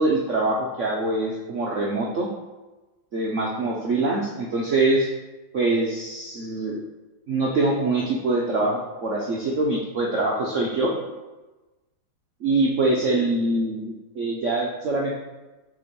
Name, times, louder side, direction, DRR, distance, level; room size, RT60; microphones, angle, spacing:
voice 1, 0.0-2.3 3.1-5.1 5.5-6.8 7.3-11.0 12.4-15.2, right 2 dB, 80° right, -3 dB, 0.6 m, -24 dB
6.9 x 3.6 x 5.1 m, 1.1 s
omnidirectional pair, 2.3 m